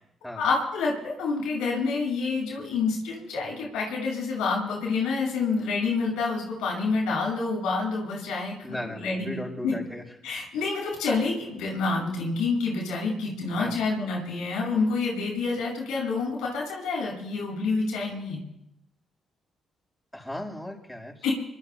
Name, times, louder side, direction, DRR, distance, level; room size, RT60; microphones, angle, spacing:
voice 1, 0.4-9.7 10.2-18.4 21.2-21.3, left 4 dB, 90° left, -2 dB, 6.6 m, -28 dB
voice 2, 8.6-10.0 13.6-13.8 20.1-21.3, left 1 dB, 10° left, -1 dB, 6.4 m, -36 dB
25.0 x 25.0 x 2.3 m, 0.85 s
supercardioid pair, 55°, 0 cm